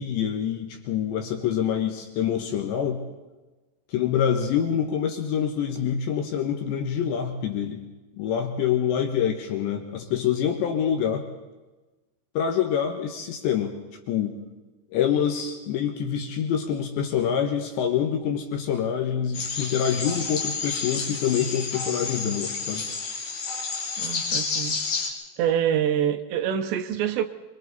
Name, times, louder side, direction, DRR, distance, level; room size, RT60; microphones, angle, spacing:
voice 1, 0.0-3.0 3.9-7.8 8.2-11.3 12.3-13.8 14.1-14.4 14.9-22.9, left 8 dB, 70° left, 4 dB, 3.3 m, -26 dB
sound 1, 19.3-25.1, left 4 dB, 50° left, 4.5 m, -30 dB
voice 2, 24.0-24.8 25.4-27.2, right 9 dB, 75° right, 8 dB, 2.8 m, -25 dB
27.0 x 23.5 x 4.1 m, 1.2 s
omnidirectional pair, 5.6 m